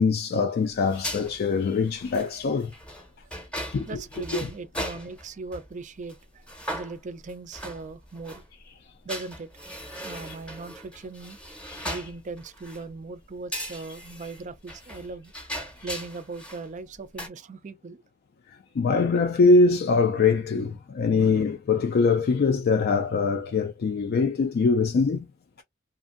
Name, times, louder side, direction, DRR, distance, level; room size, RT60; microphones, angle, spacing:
voice 1, 0.0-2.7 3.7-4.0 11.7-11.8 18.8-25.3, left 4 dB, 55° left, 0.3 m, -23 dB
sound 1, 0.7-5.7 6.1-6.2 6.5-8.4 9.1-12.9 13.5-16.7 16.9-17.3, equal, 5° left, 0.7 m, -38 dB
voice 2, 3.9-6.4 6.7-8.4 9.0-9.7 10.0-11.4 11.8-15.3 15.8-18.0 21.0-21.2, right 3 dB, 40° right, 0.4 m, -39 dB
2.6 x 2.5 x 2.4 m
head